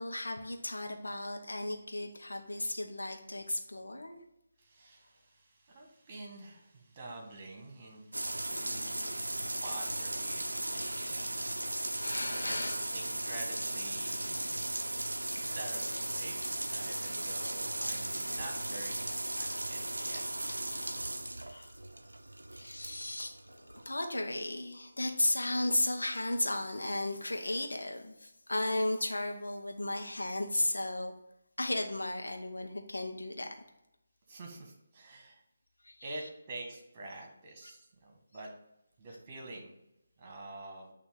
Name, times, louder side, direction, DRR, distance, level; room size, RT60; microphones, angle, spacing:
voice 1, 0.0-4.2 8.4-8.5 10.8-11.0 12.0-12.8 16.8-16.9 21.4-21.7 22.5-31.1 31.6-33.5 35.8-36.1, left 1 dB, 80° left, 4 dB, 1.0 m, -35 dB
voice 2, 4.6-15.1 15.5-16.4 16.7-20.2 34.3-35.4 36.0-38.5 39.0-39.7 40.2-40.9, right 2 dB, 30° right, 0 dB, 1.6 m, -48 dB
sound 1, 8.1-23.9, right 1 dB, 85° right, 0.5 m, -36 dB
8.5 x 2.9 x 5.0 m, 0.86 s
figure-of-eight pair, 155°, 0 cm